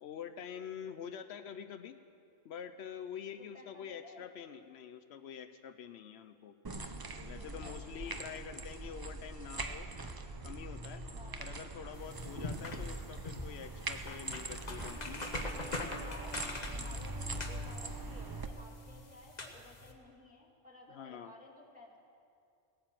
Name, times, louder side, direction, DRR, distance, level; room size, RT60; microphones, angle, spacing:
voice 1, 0.0-2.0 2.4-6.6 7.2-9.9 10.4-11.0 11.4-15.2 20.9-21.3, left 8 dB, 80° left, 9 dB, 0.9 m, -46 dB
voice 2, 3.4-4.3 7.1-8.4 11.1-11.6 15.5-16.4 16.7-22.0, left 2 dB, 5° right, -3 dB, 2.4 m, -55 dB
sound 1, 6.6-18.5, right 2 dB, 30° right, 0.5 m, -42 dB
sound 2, 11.9-19.9, left 2 dB, 40° left, 1.1 m, -44 dB
Wind instrument woodwind instrument, 14.7-19.0, right 2 dB, 20° left, 1.6 m, -52 dB
17.5 x 8.8 x 7.5 m, 2.4 s
omnidirectional pair, 1.1 m